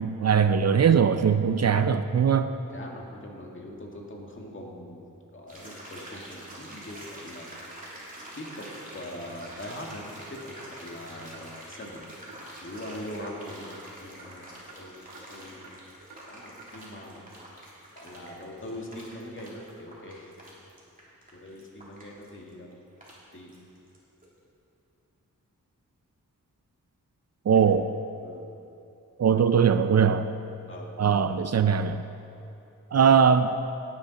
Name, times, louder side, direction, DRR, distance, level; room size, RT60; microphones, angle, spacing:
voice 1, 0.0-2.5 27.5-27.9 29.2-30.3 31.0-32.0 32.9-33.5, right 7 dB, 55° right, 10 dB, 0.5 m, -21 dB
voice 2, 2.3-5.0 5.3-7.5 8.3-8.7 8.9-12.1 12.6-15.7 16.3-17.2 17.9-20.5 21.3-22.8 23.3-23.5 27.5-27.7 28.2-28.4 30.7-30.9, left 1 dB, 40° left, -1 dB, 2.0 m, -42 dB
sound 1, 5.5-24.0 24.2-24.3, right 1 dB, 25° right, 3.1 m, -46 dB
Clock, 9.4-9.5 9.9-10.0 10.4-10.5 10.9-11.0 11.3-11.5 11.8-11.9 12.3-12.4 12.8-12.9 13.2-13.4 13.7-13.8 14.2-14.3 14.7-14.8 15.1-15.3 15.6-15.8 16.1-16.2 16.6-16.7, right 5 dB, 75° right, 1.9 m, -49 dB
17.5 x 9.1 x 4.1 m, 2.9 s
wide cardioid pair, 100°, 32 cm